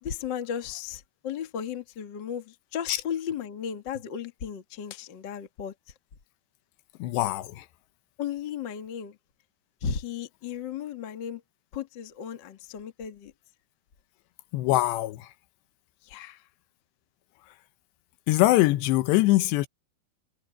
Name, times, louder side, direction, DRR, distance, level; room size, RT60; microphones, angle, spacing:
voice 1, 0.0-5.7 8.2-9.2 9.8-11.4 11.7-13.3 16.0-16.5, left 8 dB, 50° left, 1.3 m, -35 dB
voice 2, 7.0-7.7 14.5-15.3 18.3-19.7, left 17 dB, 85° left, 3.0 m, -23 dB
omnidirectional pair, 4.9 m